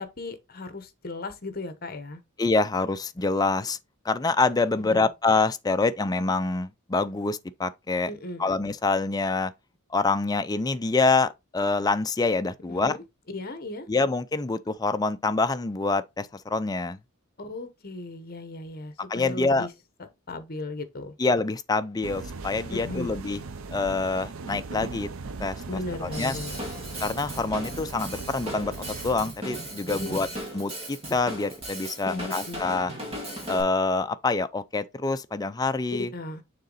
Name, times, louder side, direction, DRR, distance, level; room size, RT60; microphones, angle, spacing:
voice 1, 0.0-2.2 4.8-5.1 8.0-8.5 12.7-13.0 13.3-13.9 17.4-19.7 20.3-21.1 22.7-23.1 25.7-26.6 29.9-30.2 32.1-32.6 36.0-36.4, left 2 dB, 45° left, 1.1 m, -36 dB
voice 2, 2.4-3.8 4.0-8.1 8.4-9.5 9.9-13.0 13.9-17.0 19.1-19.7 21.2-23.4 23.7-25.1 25.4-25.6 26.0-26.3 27.0-28.8 29.0-30.3 30.5-32.9 33.5-36.1, left 3 dB, 20° left, 0.4 m, -26 dB
sound 1, 22.0-29.2, right 3 dB, 70° right, 0.6 m, -38 dB
Drum kit / Drum, 26.1-33.6, right 1 dB, 30° right, 2.1 m, -37 dB
6.6 x 4.0 x 3.9 m
head